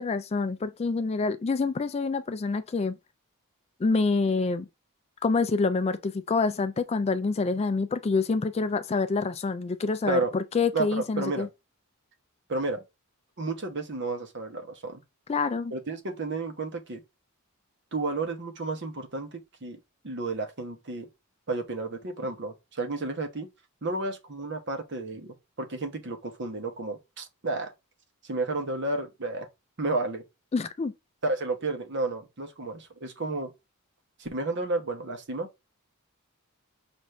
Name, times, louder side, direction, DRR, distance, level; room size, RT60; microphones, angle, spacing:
voice 1, 0.0-2.9 3.8-4.7 5.2-11.5 15.3-15.7 30.5-30.9, left 4 dB, 30° left, 0.3 m, -27 dB
voice 2, 10.7-11.5 12.5-12.8 13.4-15.0 15.7-17.0 17.9-19.8 20.0-21.1 21.5-23.5 23.8-27.7 28.2-29.5 29.8-30.2 31.2-33.5 34.2-35.5, right 3 dB, 50° right, 1.0 m, -32 dB
6.1 x 2.6 x 3.2 m
head